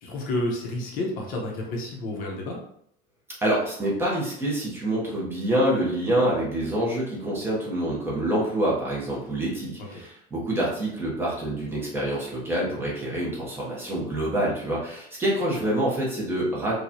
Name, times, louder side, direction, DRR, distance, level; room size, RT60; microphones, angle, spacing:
voice 1, 0.0-2.6 9.8-9.9, left 1 dB, 40° left, -1 dB, 0.8 m, -30 dB
voice 2, 3.4-16.8, right 1 dB, 10° right, -5 dB, 0.8 m, -26 dB
4.7 x 2.3 x 2.7 m, 0.69 s
cardioid pair, 175°, 20 cm